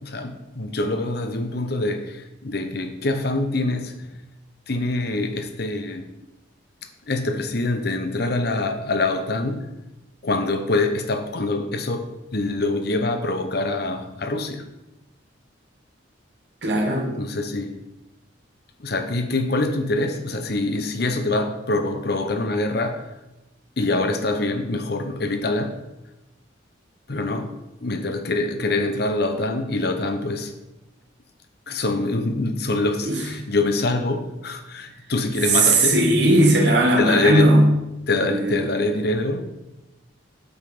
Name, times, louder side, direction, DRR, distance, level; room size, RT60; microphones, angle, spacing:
voice 1, 0.0-4.1 4.7-6.1 7.1-9.7 10.2-14.6 17.2-17.8 18.8-23.1 23.8-25.8 27.1-27.5 27.8-30.5 31.7-36.0 37.0-37.5 38.1-39.4, left 2 dB, 55° left, 7 dB, 0.9 m, -24 dB
voice 2, 16.6-17.1 33.0-33.2 35.4-37.7 38.2-38.6, right 2 dB, 60° right, 1 dB, 1.7 m, -18 dB
8.1 x 5.8 x 4.9 m, 0.96 s
head